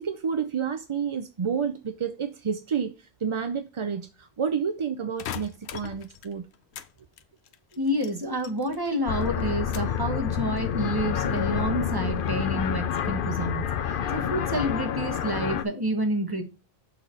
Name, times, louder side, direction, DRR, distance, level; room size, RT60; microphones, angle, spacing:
voice 1, 0.0-6.5, right 6 dB, 45° right, 0.4 m, -30 dB
sound 1, 5.2-6.9 7.2-8.9 9.2-10.0 10.5-11.0, left 9 dB, 85° left, 0.9 m, -40 dB
voice 2, 7.7-13.7 14.1-16.4, equal, 20° right, 1.2 m, -29 dB
sound 2, 9.1-15.6, left 8 dB, 60° left, 0.7 m, -28 dB
6.7 x 4.0 x 4.5 m
omnidirectional pair, 1.1 m